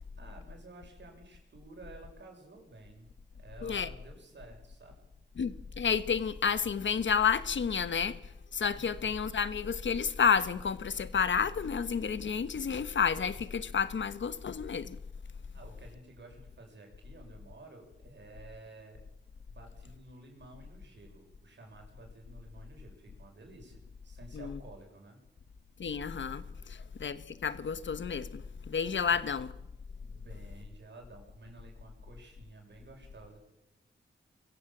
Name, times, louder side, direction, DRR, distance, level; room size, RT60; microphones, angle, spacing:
voice 1, 0.2-3.1 3.4-5.0 8.7-9.2 15.5-19.0 19.5-25.3 29.1-29.3 30.0-33.4, right 2 dB, 70° right, 6.8 m, -52 dB
voice 2, 5.4-15.0 24.3-24.6 25.8-29.5, left 6 dB, 75° left, 1.3 m, -31 dB
23.0 x 16.0 x 7.4 m
wide cardioid pair, 90°, 19 cm